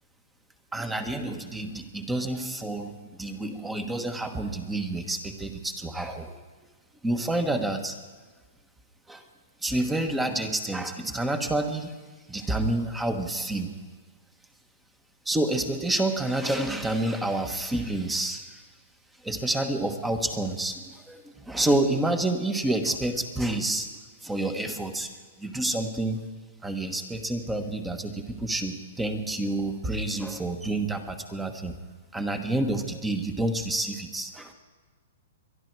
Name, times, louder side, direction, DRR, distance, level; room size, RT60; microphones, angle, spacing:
voice 1, 0.7-6.4 7.0-7.9 9.1-9.2 9.6-12.0 12.3-13.7 15.2-18.6 19.2-23.9 24.2-25.1 25.4-26.2 26.6-31.8 32.1-34.5, right 2 dB, 10° right, 6 dB, 1.4 m, -28 dB
22.5 x 12.0 x 4.7 m, 1.4 s
hypercardioid pair, 135°, 0 cm